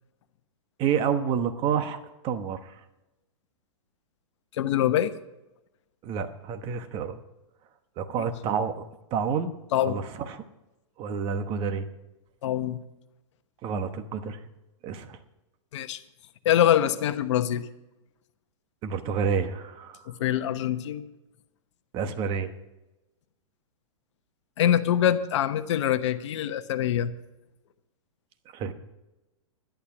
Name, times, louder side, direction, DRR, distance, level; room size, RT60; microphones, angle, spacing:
voice 1, 0.8-2.0 2.2-2.7 6.0-7.2 8.0-8.8 9.1-9.5 9.8-10.4 11.0-11.8 13.6-14.4 14.8-15.2 18.8-20.0 21.9-22.5 28.5-28.7, right 6 dB, 30° right, 9 dB, 1.1 m, -29 dB
voice 2, 4.5-5.1 8.2-8.3 9.7-10.0 12.4-12.8 15.7-16.0 16.4-17.7 20.1-21.0 24.6-27.1, left 11 dB, 60° left, 11 dB, 1.0 m, -24 dB
11.5 x 11.5 x 6.1 m, 0.99 s
hypercardioid pair, 145°, 17 cm